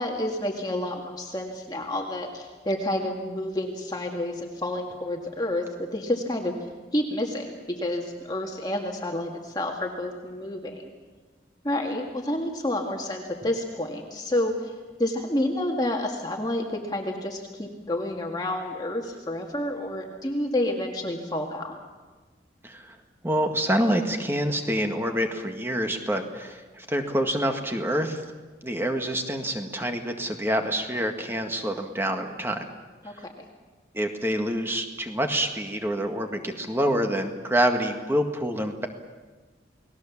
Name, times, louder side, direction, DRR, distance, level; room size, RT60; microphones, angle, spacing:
voice 1, 0.0-6.5 6.9-10.9 11.6-14.7 15.0-21.8 33.0-33.4, left 1 dB, 20° left, 1 dB, 2.0 m, -29 dB
voice 2, 22.6-23.0 23.2-28.2 28.6-32.6 33.9-38.9, equal, 10° right, 5 dB, 1.9 m, -27 dB
29.5 x 19.5 x 7.3 m, 1.3 s
head